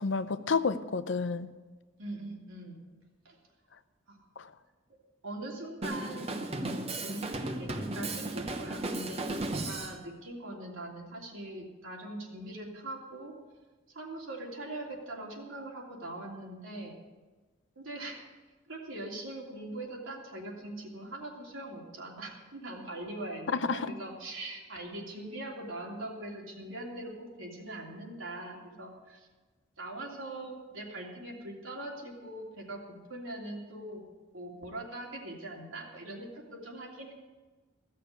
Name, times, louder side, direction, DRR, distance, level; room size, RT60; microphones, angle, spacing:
voice 1, 0.0-1.5 4.4-4.5 23.5-23.9, left 4 dB, 65° left, 12 dB, 0.6 m, -30 dB
voice 2, 2.0-2.8 3.2-3.4 4.1-4.2 5.2-13.3 13.9-16.9 17.8-18.2 18.7-29.3 29.8-32.8 33.1-34.0 34.3-37.1, right 1 dB, 80° right, -1 dB, 3.0 m, -42 dB
Drum kit, 5.8-10.0, right 2 dB, 30° right, 0.9 m, -35 dB
15.5 x 6.8 x 8.3 m, 1.3 s
head